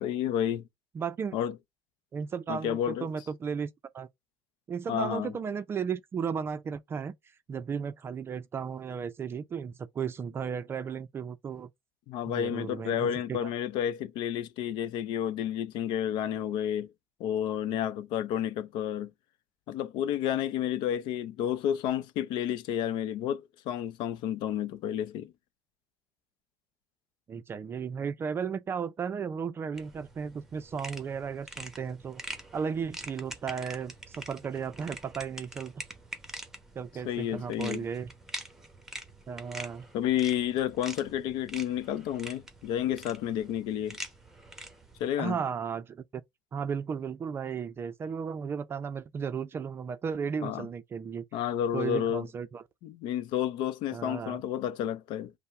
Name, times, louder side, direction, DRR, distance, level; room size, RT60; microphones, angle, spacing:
voice 1, 0.0-0.6 1.3-1.5 2.5-3.1 4.9-5.3 12.1-16.9 17.2-19.1 19.7-25.3 37.1-37.9 39.9-44.0 45.0-45.3 50.4-50.7 51.3-52.3 52.8-55.3, left 10 dB, 70° left, 0.5 m, -31 dB
voice 2, 0.9-1.4 2.1-3.7 3.9-4.1 4.7-7.2 7.5-11.7 12.3-13.5 27.3-32.2 32.5-35.7 36.8-38.1 39.3-39.9 45.2-46.2 46.5-51.2 51.7-52.6 53.9-54.4, right 6 dB, 30° right, 0.4 m, -35 dB
sound 1, 29.7-45.1, right 1 dB, 5° right, 0.9 m, -45 dB
5.5 x 2.1 x 4.6 m
cardioid pair, 145°, 8 cm